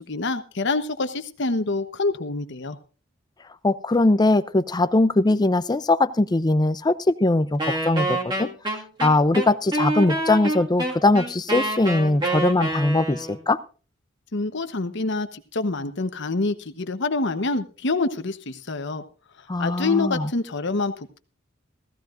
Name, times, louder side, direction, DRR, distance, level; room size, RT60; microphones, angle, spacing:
voice 1, 0.1-2.8 14.3-19.0 19.6-21.2, left 3 dB, 60° left, 10 dB, 1.0 m, -26 dB
voice 2, 3.6-8.5 9.0-13.6 19.5-20.3, left 2 dB, 20° left, 14 dB, 0.5 m, -21 dB
Wind instrument woodwind instrument, 7.6-13.4, right 1 dB, 25° right, 1.9 m, -27 dB
17.0 x 15.0 x 2.6 m, 0.37 s
head